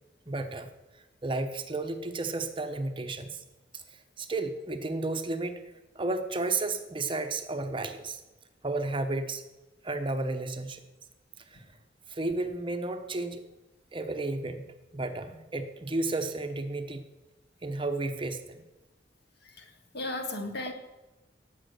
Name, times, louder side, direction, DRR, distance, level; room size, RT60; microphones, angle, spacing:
voice 1, 0.3-0.7 1.2-3.4 4.2-5.6 5.9-8.2 8.6-9.4 9.8-10.8 11.5-11.6 12.1-13.4 13.9-14.6 14.9-17.0 17.6-18.6, right 2 dB, 30° right, 7 dB, 1.0 m, -32 dB
voice 2, 19.4-20.7, left 2 dB, 60° left, 5 dB, 2.1 m, -36 dB
18.0 x 7.6 x 6.8 m, 1.1 s
head